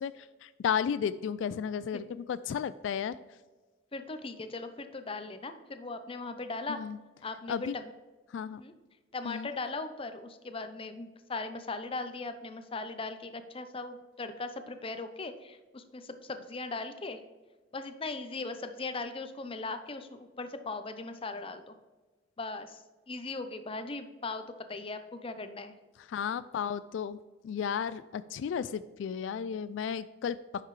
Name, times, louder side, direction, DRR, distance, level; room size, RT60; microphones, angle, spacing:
voice 1, 0.0-3.1 6.7-7.0 7.5-7.7 8.3-8.6 9.3-9.5 26.1-27.2 27.4-30.4, left 7 dB, 80° left, 15 dB, 0.3 m, -33 dB
voice 2, 3.9-6.8 7.2-7.9 8.6-8.7 9.1-17.2 17.7-21.8 22.4-25.8, left 3 dB, 30° left, 9 dB, 0.6 m, -39 dB
9.9 x 5.8 x 3.2 m, 1.3 s
head